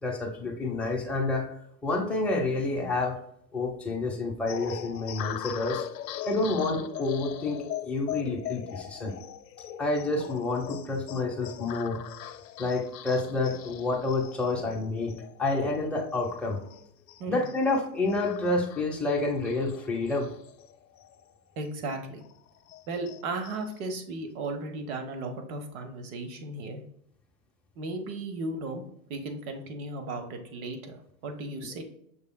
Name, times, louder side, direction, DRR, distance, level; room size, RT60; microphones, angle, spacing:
voice 1, 0.0-1.5 1.8-3.2 3.5-5.9 6.3-9.1 9.8-12.0 12.6-16.6 17.3-20.3, left 2 dB, ahead, -2 dB, 0.8 m, -29 dB
sound 1, 4.5-21.4 21.7-21.8 22.2-23.8, left 11 dB, 85° left, 0.6 m, -41 dB
voice 2, 21.6-22.2 22.9-26.8 27.8-28.8 29.1-31.8, right 2 dB, 60° right, 5 dB, 1.2 m, -35 dB
6.2 x 3.4 x 2.2 m, 0.71 s
hypercardioid pair, 115°, 48 cm